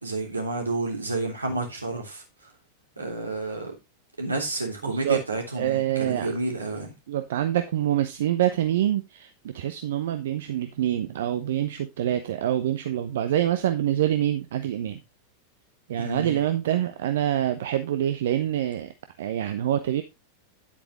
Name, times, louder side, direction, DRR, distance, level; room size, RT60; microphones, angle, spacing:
voice 1, 0.0-2.2 3.0-3.8 4.2-6.9 16.0-16.4, right 2 dB, 80° right, 3.1 m, -30 dB
voice 2, 4.8-5.2 5.6-6.3 7.1-15.0 15.9-18.9 19.2-20.0, right 11 dB, 60° right, 0.9 m, -26 dB
10.0 x 8.6 x 3.0 m
figure-of-eight pair, 90°, 0 cm